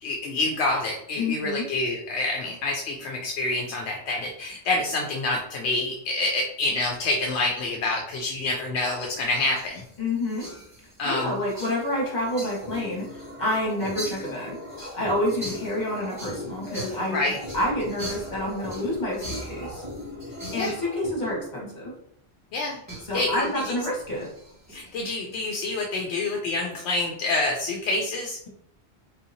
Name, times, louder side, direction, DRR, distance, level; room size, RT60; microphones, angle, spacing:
voice 1, 0.0-9.8 11.0-11.3 17.1-17.4 20.6-20.7 22.5-22.8 23.1-23.8 24.7-28.4, left 2 dB, 75° left, 0 dB, 0.8 m, -27 dB
voice 2, 1.2-1.6 10.0-10.5 11.0-13.0 13.4-14.6 14.9-17.2 17.5-19.8 20.5-21.9 23.0-24.3, left 1 dB, 40° left, -3 dB, 1.4 m, -28 dB
sound 1, 9.1-20.8 22.9-25.0, right 1 dB, 15° right, 1.5 m, -42 dB
sound 2, 11.7-21.4, left 2 dB, 60° right, 1.5 m, -39 dB
3.7 x 2.7 x 2.7 m, 0.70 s
omnidirectional pair, 1.1 m